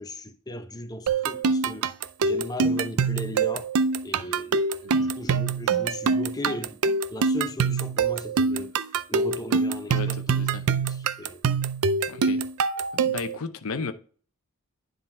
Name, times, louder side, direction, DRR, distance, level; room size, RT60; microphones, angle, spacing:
voice 1, 0.0-1.9 2.2-3.7 4.0-6.8 7.1-10.5 10.8-11.4, left 1 dB, 15° left, 0.6 m, -37 dB
sound 1, 1.1-13.4, right 4 dB, 80° right, 0.5 m, -24 dB
voice 2, 9.9-10.7 12.1-12.4 12.9-13.9, left 4 dB, 70° left, 0.7 m, -34 dB
10.0 x 3.9 x 4.3 m
head